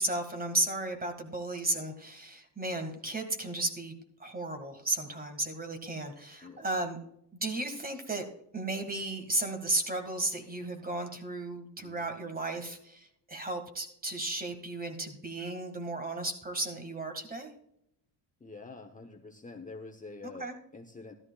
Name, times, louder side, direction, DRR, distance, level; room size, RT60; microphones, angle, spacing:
voice 1, 0.0-7.0 7.4-8.3 8.5-17.5 20.2-20.6, right 2 dB, 20° right, 6 dB, 2.0 m, -34 dB
voice 2, 11.8-12.1 18.4-21.1, left 3 dB, 20° left, 3 dB, 0.9 m, -47 dB
14.0 x 13.0 x 2.4 m, 0.76 s
cardioid pair, 90°, 44 cm